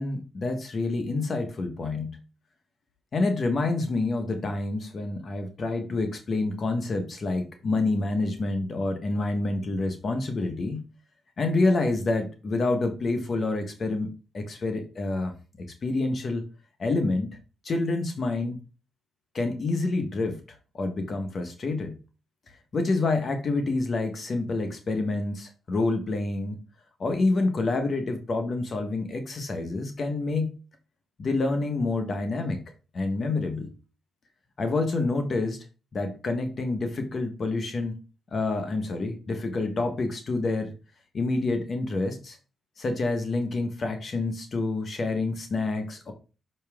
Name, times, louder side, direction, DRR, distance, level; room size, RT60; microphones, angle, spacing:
voice 1, 0.0-2.2 3.1-10.8 11.4-15.3 15.8-16.4 16.8-17.4 17.6-18.6 19.3-21.9 22.5-26.6 27.0-30.5 31.2-32.6 32.9-33.7 34.6-35.6 35.9-38.0 38.3-40.7 41.1-42.4 42.8-46.1, left 3 dB, 50° left, 6 dB, 1.3 m, -28 dB
6.3 x 5.5 x 3.6 m, 0.33 s
cardioid pair, 80°, 0 cm